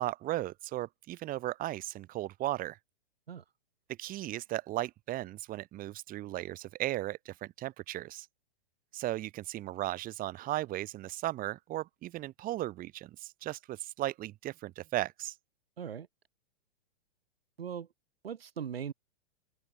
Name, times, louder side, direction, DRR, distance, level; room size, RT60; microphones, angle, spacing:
voice 1, 0.0-2.8 4.0-8.3 8.9-15.3, right 15 dB, 30° right, 4.1 m, -36 dB
voice 2, 15.8-16.1 17.6-17.9 18.2-18.9, right 8 dB, 90° right, 3.6 m, -39 dB
open air
hypercardioid pair, 135°, 29 cm